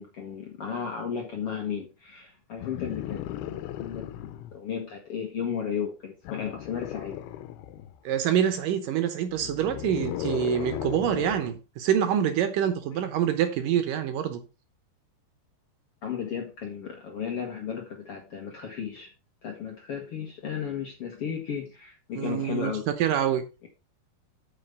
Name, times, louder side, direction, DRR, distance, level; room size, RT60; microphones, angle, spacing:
voice 1, 0.0-7.2 16.0-19.1 19.4-22.9, left 7 dB, 55° left, 1.7 m, -34 dB
sound 1, 2.6-4.6 6.2-8.0 9.3-11.6 12.9-13.0, left 13 dB, 85° left, 2.7 m, -36 dB
voice 2, 8.1-14.4 22.2-23.4, right 10 dB, 70° right, 2.3 m, -26 dB
8.9 x 5.9 x 5.2 m
omnidirectional pair, 4.5 m